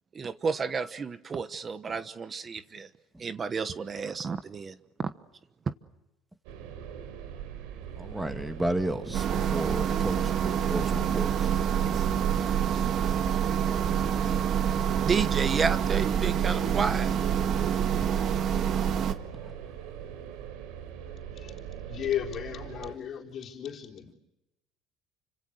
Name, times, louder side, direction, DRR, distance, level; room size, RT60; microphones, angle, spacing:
voice 1, 0.1-2.9 3.2-5.1 15.0-17.5, right 5 dB, 25° right, 12 dB, 1.2 m, -31 dB
sound 1, 6.4-22.9, right 9 dB, 90° right, 4.3 m, -42 dB
voice 2, 8.0-11.5 19.4-19.6, right 1 dB, 10° right, 7 dB, 2.3 m, -33 dB
sound 2, 9.1-19.1, right 8 dB, 50° right, 1.9 m, -26 dB
voice 3, 21.9-24.1, left 10 dB, 45° left, 1 dB, 3.9 m, -34 dB
30.0 x 26.0 x 6.5 m, 0.95 s
cardioid pair, 130°, 0 cm